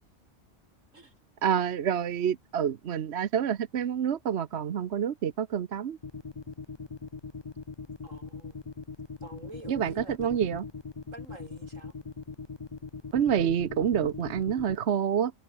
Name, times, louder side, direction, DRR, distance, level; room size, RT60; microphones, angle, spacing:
voice 1, 1.4-6.0 9.7-10.6 13.1-15.3, right 8 dB, 60° right, 1.1 m, -28 dB
sound 1, 6.0-14.8, left 4 dB, 25° left, 0.6 m, -40 dB
voice 2, 8.0-8.6 9.2-10.5 11.1-11.9, right 2 dB, 90° right, 5.4 m, -48 dB
omnidirectional pair, 1.3 m